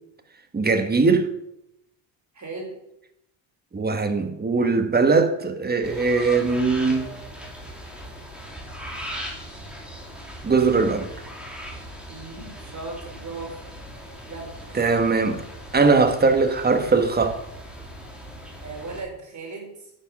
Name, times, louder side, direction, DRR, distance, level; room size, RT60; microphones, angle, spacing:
voice 1, 0.5-1.3 3.7-7.1 10.4-11.1 14.7-15.4 15.7-17.4, right 4 dB, 20° right, 1.4 m, -20 dB
voice 2, 2.3-2.8 12.1-13.6 14.3-15.0 18.6-19.9, right 3 dB, 35° right, 4.2 m, -37 dB
sound 1, 5.8-19.0, equal, ahead, 2.8 m, -39 dB
11.0 x 6.6 x 6.1 m
cardioid pair, 100°, 48 cm